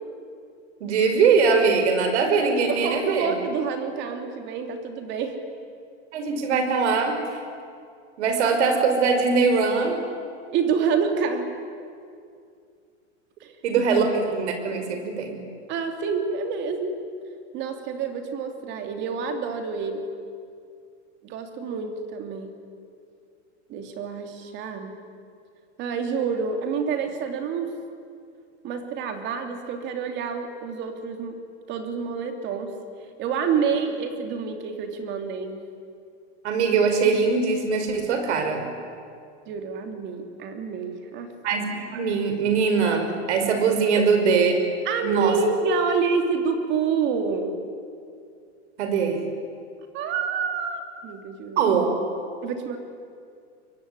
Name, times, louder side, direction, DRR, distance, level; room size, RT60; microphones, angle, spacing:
voice 1, 0.8-3.4 6.1-7.2 8.2-10.0 13.6-15.4 36.4-38.7 41.4-44.5 45.0-45.4 48.8-49.2 51.6-52.0, right 5 dB, 75° right, 6 dB, 5.7 m, -22 dB
voice 2, 2.7-5.4 10.5-11.5 13.4-13.5 15.7-17.0 17.5-20.1 21.2-22.5 23.7-24.9 25.8-27.7 28.6-31.4 31.7-32.7 33.2-35.6 39.5-41.3 43.9-44.0 44.8-47.6 49.9-51.6 52.4-52.8, right 5 dB, 30° right, 5 dB, 3.1 m, -28 dB
26.0 x 23.5 x 9.9 m, 2.3 s
supercardioid pair, 165°, 34 cm